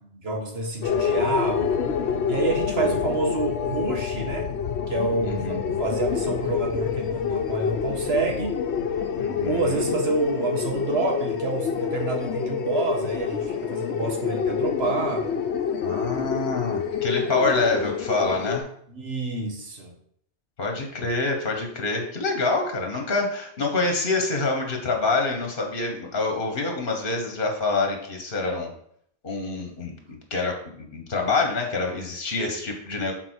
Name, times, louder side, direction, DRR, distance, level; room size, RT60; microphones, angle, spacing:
voice 1, 0.1-1.9 2.3-4.5 4.9-8.7 9.4-15.3 16.7-16.8 17.1-17.7 18.9-19.9, right 3 dB, 70° right, 0 dB, 1.8 m, -28 dB
sound 1, 0.8-18.6, left 7 dB, 85° left, 1.0 m, -27 dB
voice 2, 5.2-5.6 9.2-10.0 15.8-18.6 20.6-28.7 29.2-33.1, left 3 dB, 55° left, 3 dB, 1.5 m, -26 dB
6.9 x 4.3 x 6.3 m, 0.67 s
omnidirectional pair, 1.1 m